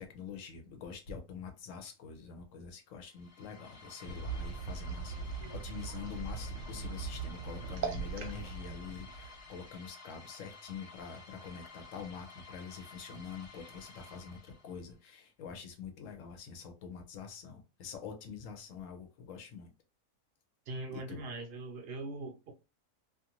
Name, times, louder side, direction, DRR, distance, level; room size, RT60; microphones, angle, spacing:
voice 1, 0.0-19.7 20.9-21.2, left 6 dB, 75° left, 1.0 m, -46 dB
sound 1, 3.1-14.9, left 3 dB, 45° left, 0.5 m, -53 dB
sound 2, 4.0-9.8, right 4 dB, 75° right, 1.0 m, -40 dB
voice 2, 20.7-22.5, right 2 dB, 60° right, 0.8 m, -41 dB
2.5 x 2.5 x 2.9 m
omnidirectional pair, 1.4 m